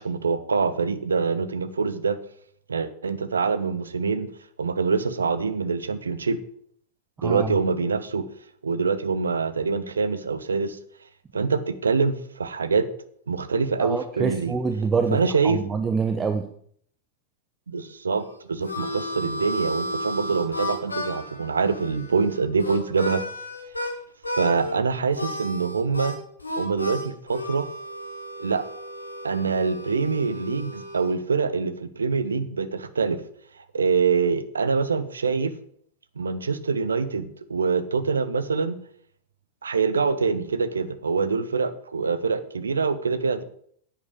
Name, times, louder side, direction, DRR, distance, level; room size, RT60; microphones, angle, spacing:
voice 1, 0.0-2.2 2.7-4.3 4.6-6.4 7.2-8.3 8.6-10.8 11.3-12.9 13.3-14.6 15.1-15.6 17.7-23.2 24.3-26.1 26.6-27.7 28.4-28.7 29.2-33.2 33.7-35.5 36.2-38.8 39.6-43.4, right 5 dB, 75° right, 13 dB, 0.8 m, -25 dB
voice 2, 7.2-7.5 13.8-15.2 15.4-16.5, right 5 dB, 20° right, 6 dB, 0.9 m, -25 dB
Harmonica, 18.1-23.9 24.2-24.7 25.1-31.1, left 1 dB, 80° left, 1.6 m, -33 dB
9.9 x 8.4 x 5.3 m, 0.62 s
figure-of-eight pair, 90°, 0 cm